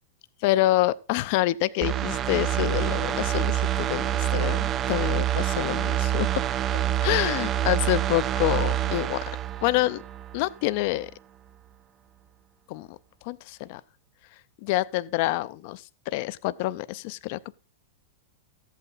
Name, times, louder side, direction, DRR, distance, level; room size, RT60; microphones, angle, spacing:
voice 1, 0.4-6.4 7.0-9.2 9.6-10.0 10.3-11.1 12.7-13.0 13.2-13.8 14.6-17.4, left 17 dB, 55° left, 0.4 m, -27 dB
sound 1, 1.8-10.5 10.8-10.9, right 11 dB, 35° right, 0.4 m, -26 dB
14.0 x 8.3 x 4.0 m
hypercardioid pair, 105°, 0 cm